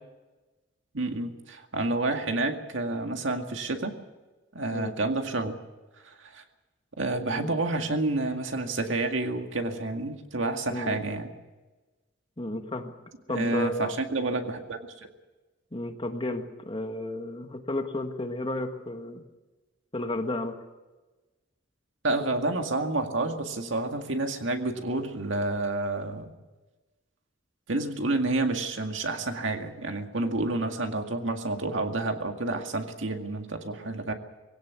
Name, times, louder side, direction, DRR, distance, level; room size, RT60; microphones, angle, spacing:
voice 1, 0.9-3.9 4.5-5.6 6.0-6.4 7.0-11.3 13.3-14.8 22.0-26.3 27.7-34.1, right 2 dB, 70° right, 5 dB, 2.0 m, -29 dB
voice 2, 10.7-11.0 12.4-12.9 13.3-13.9 15.7-19.2 19.9-20.6, left 1 dB, 25° left, 6 dB, 1.6 m, -32 dB
21.5 x 17.0 x 8.3 m, 1.2 s
head